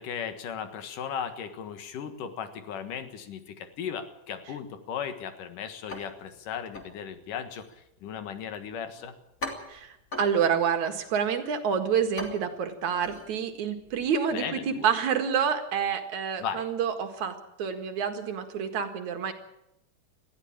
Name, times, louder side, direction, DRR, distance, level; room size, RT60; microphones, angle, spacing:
voice 1, 0.0-9.1 14.3-14.9 16.4-16.7, left 7 dB, 85° left, 9 dB, 3.3 m, -36 dB
sound 1, 5.9-14.1, left 1 dB, 25° left, 3.2 m, -43 dB
voice 2, 9.7-19.3, right 7 dB, 65° right, 7 dB, 3.1 m, -28 dB
20.5 x 14.5 x 8.8 m, 0.83 s
omnidirectional pair, 3.6 m